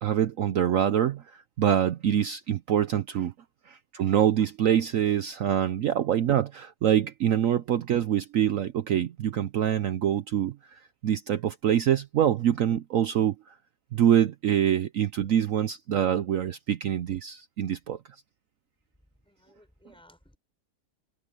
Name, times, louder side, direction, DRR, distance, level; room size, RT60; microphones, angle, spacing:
voice 1, 0.0-3.3 3.7-13.6 13.9-18.0, right 10 dB, 65° right, 0.9 m, -25 dB
voice 2, 19.2-20.4, left 1 dB, 5° left, 4.8 m, -58 dB
omnidirectional pair, 1.8 m